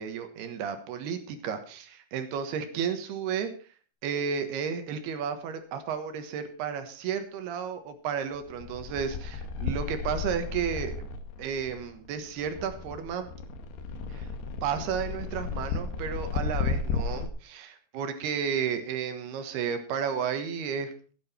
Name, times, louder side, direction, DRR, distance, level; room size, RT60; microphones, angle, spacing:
voice 1, 0.0-3.5 4.0-10.9 11.4-13.3 14.1-14.3 14.6-20.9, right 7 dB, 75° right, 8 dB, 3.3 m, -32 dB
sound 1, 8.3-17.3, left 5 dB, 80° left, 3.2 m, -34 dB
16.0 x 10.0 x 4.3 m, 0.38 s
omnidirectional pair, 4.8 m